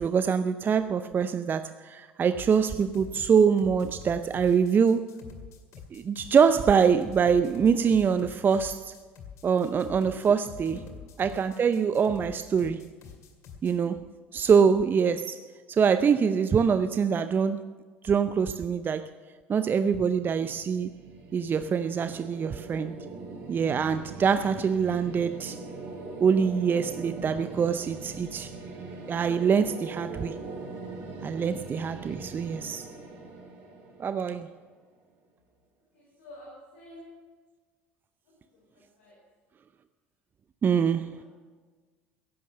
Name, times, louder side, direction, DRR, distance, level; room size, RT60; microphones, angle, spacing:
voice 1, 0.0-5.1 5.9-8.9 9.4-10.8 11.2-12.8 13.6-14.0 14.3-15.4 15.7-17.6 18.0-19.1 19.5-20.9 21.3-23.0 23.5-25.6 26.2-28.5 29.1-30.4 31.2-32.8 34.0-34.5 40.6-41.2, right 6 dB, 30° right, 12 dB, 0.5 m, -24 dB
sound 1, 2.3-13.7, left 7 dB, 50° left, 2.2 m, -46 dB
sound 2, 19.9-34.8, right 3 dB, 55° right, 5.8 m, -41 dB
voice 2, 35.9-37.0 38.7-39.2 41.1-41.2, left 2 dB, 70° left, -5 dB, 4.5 m, -48 dB
15.5 x 11.0 x 6.6 m, 1.4 s
figure-of-eight pair, 65°, 6 cm